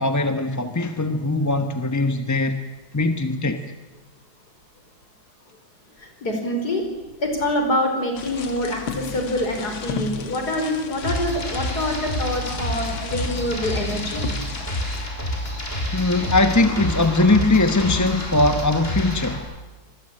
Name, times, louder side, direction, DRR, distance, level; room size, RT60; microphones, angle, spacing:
voice 1, 0.0-2.6 2.9-3.6 13.9-14.0 15.9-19.5, left 2 dB, 15° left, 8 dB, 0.8 m, -20 dB
voice 2, 6.0-6.8 7.2-14.2, left 1 dB, 55° left, 4 dB, 5.5 m, -25 dB
sound 1, 8.2-15.1, left 6 dB, 90° left, 2.4 m, -35 dB
sound 2, 11.0-19.4, equal, 30° left, 6.2 m, -28 dB
26.0 x 20.0 x 8.9 m, 1.2 s
omnidirectional pair, 2.1 m